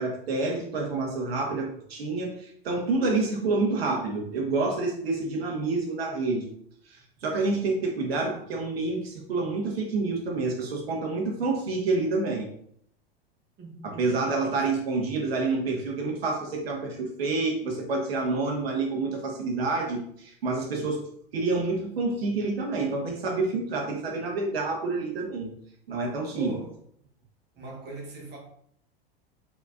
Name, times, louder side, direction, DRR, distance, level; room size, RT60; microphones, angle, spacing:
voice 1, 0.0-6.5 6.9-12.5 13.8-21.0 21.3-25.5 25.9-26.5, right 3 dB, 80° right, 1.4 m, -28 dB
voice 2, 13.6-14.8 26.3-26.7 27.5-28.4, right 3 dB, 35° right, 1.5 m, -41 dB
4.3 x 4.1 x 2.6 m
hypercardioid pair, 95°, 30 cm